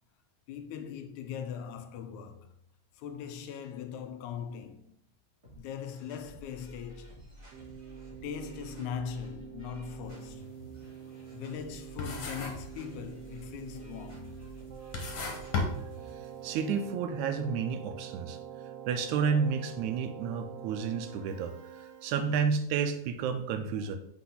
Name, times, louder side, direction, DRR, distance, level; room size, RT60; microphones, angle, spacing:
voice 1, 0.5-2.5 2.9-5.0 5.6-7.2 8.2-10.5 11.3-14.4, left 7 dB, 85° left, 2.1 m, -40 dB
sound 1, 5.4-16.3, right 1 dB, 10° right, 2.6 m, -51 dB
Keyboard (musical), 7.5-22.6, right 9 dB, 70° right, 1.4 m, -46 dB
sound 2, 10.1-10.3 10.7-11.7 12.0-12.8 13.0-13.6 14.2-14.3 14.8-16.5, left 3 dB, 65° left, 2.3 m, -35 dB
voice 2, 16.4-18.4 18.9-24.0, right 6 dB, 90° right, 2.0 m, -31 dB
5.9 x 5.2 x 3.9 m
omnidirectional pair, 3.3 m